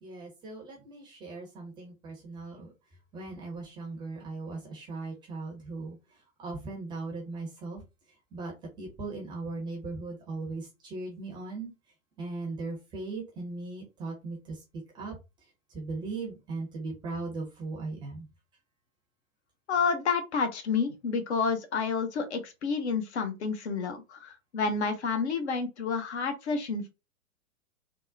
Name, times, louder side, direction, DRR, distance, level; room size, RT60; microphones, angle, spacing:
voice 1, 0.0-2.7 3.1-7.8 8.3-11.7 12.2-14.6 14.9-15.2 15.7-18.3, right 3 dB, 10° right, 0.6 m, -38 dB
voice 2, 19.7-26.9, left 5 dB, 50° left, 0.7 m, -29 dB
3.6 x 2.0 x 2.5 m
figure-of-eight pair, 110°, 43 cm